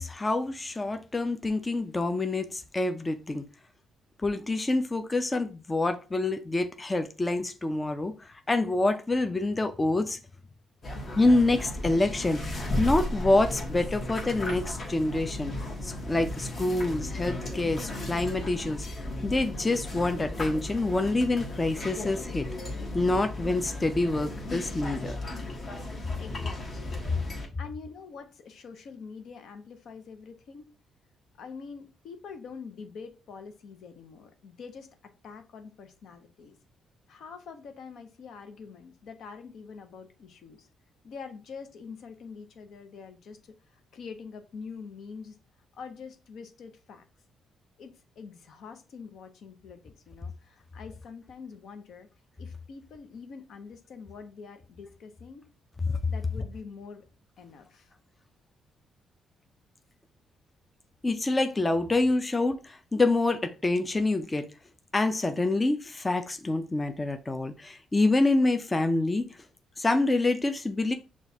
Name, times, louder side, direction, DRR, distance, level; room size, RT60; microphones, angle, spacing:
voice 1, 0.0-3.4 4.2-10.2 11.2-15.5 15.8-18.9 19.2-22.5 22.9-25.2 55.9-56.0 61.0-64.5 64.9-69.4 69.8-70.9, left 2 dB, 20° left, 0.4 m, -27 dB
sound 1, 10.8-27.5, left 1 dB, 45° left, 1.3 m, -35 dB
voice 2, 26.2-27.2 27.6-30.7 31.4-36.6 37.1-40.7 41.0-45.4 45.7-47.0 47.8-52.1 52.4-55.5 56.1-57.1 57.4-57.9, left 5 dB, 70° left, 0.7 m, -45 dB
6.1 x 2.4 x 2.8 m
cardioid pair, 90°, 0 cm